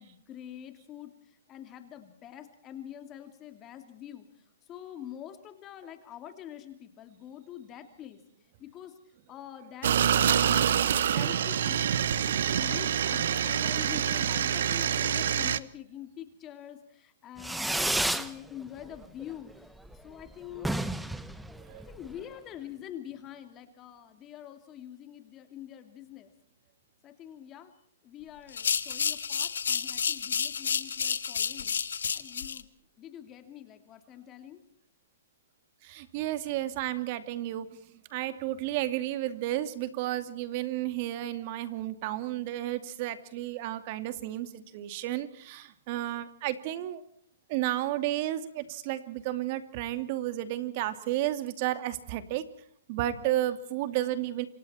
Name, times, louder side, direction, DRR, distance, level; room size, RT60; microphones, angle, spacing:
voice 1, 0.0-4.3 4.7-8.2 8.6-9.0 9.3-11.9 12.2-19.7 20.0-20.7 21.7-26.3 27.0-27.7 28.0-31.8 32.1-32.7 33.0-34.6, left 10 dB, 25° left, 8 dB, 2.7 m, -45 dB
sound 1, 9.8-15.6, right 9 dB, 65° right, 1.1 m, -26 dB
Fireworks, 17.4-18.3 18.7-19.2 19.5-19.6 19.8-20.0 20.2-20.3 20.5-22.2, right 1 dB, 5° right, 1.2 m, -31 dB
sound 2, 28.5-32.6, left 7 dB, 80° left, 1.6 m, -30 dB
voice 2, 35.8-37.7 38.1-47.0 47.5-52.4 52.9-54.5, right 14 dB, 40° right, 11 dB, 2.5 m, -32 dB
28.5 x 26.0 x 4.4 m, 0.63 s
hypercardioid pair, 145°, 0 cm